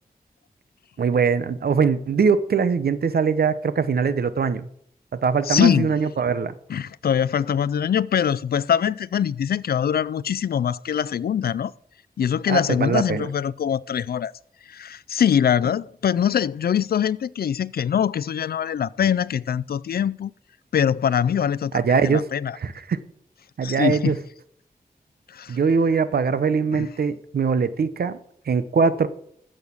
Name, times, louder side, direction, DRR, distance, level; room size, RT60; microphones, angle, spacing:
voice 1, 1.0-4.7 5.1-6.5 12.5-13.3 21.7-22.3 22.6-23.0 23.6-24.2 25.5-28.2 28.5-29.1, right 5 dB, 85° right, 0.9 m, -22 dB
voice 2, 5.5-5.9 6.7-11.7 12.2-14.3 14.7-20.3 20.7-22.6 23.6-24.2 25.3-25.6 26.7-26.9, left 8 dB, 85° left, 0.4 m, -23 dB
14.5 x 6.5 x 7.0 m
wide cardioid pair, 85°, 16 cm